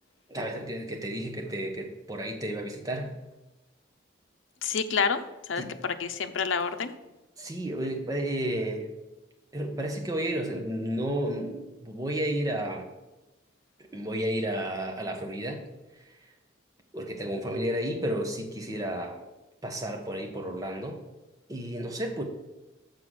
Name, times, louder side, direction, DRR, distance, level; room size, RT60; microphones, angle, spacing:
voice 1, 0.3-3.1 5.6-5.7 7.4-8.9 9.5-12.9 13.9-15.6 16.9-19.2 19.6-21.0 21.5-22.2, right 1 dB, 20° right, 3 dB, 0.9 m, -32 dB
voice 2, 4.6-6.9, left 5 dB, 90° left, 9 dB, 0.6 m, -29 dB
6.7 x 5.8 x 6.3 m, 1.0 s
head